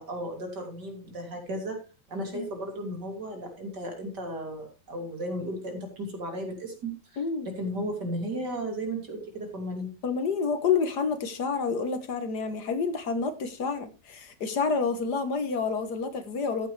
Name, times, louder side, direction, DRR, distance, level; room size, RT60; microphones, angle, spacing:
voice 1, 0.0-1.8 2.1-6.9 7.5-9.9, right 1 dB, 60° right, 2 dB, 3.7 m, -34 dB
voice 2, 7.2-7.5 10.0-16.7, left 5 dB, 60° left, 8 dB, 1.9 m, -28 dB
14.0 x 8.5 x 3.3 m, 0.32 s
omnidirectional pair, 2.0 m